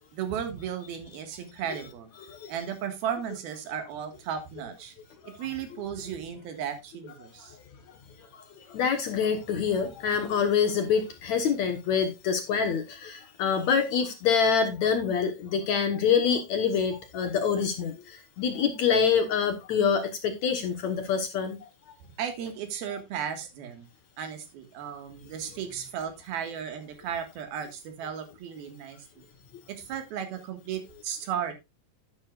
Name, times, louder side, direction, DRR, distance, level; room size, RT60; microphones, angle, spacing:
voice 1, 0.1-2.1 2.5-4.9 5.2-7.6 22.2-23.9 24.2-29.3 29.7-31.5, right 8 dB, 75° right, 7 dB, 3.6 m, -35 dB
voice 2, 8.7-21.6, left 6 dB, 60° left, 6 dB, 2.1 m, -26 dB
11.5 x 10.5 x 2.4 m, 0.23 s
omnidirectional pair, 4.4 m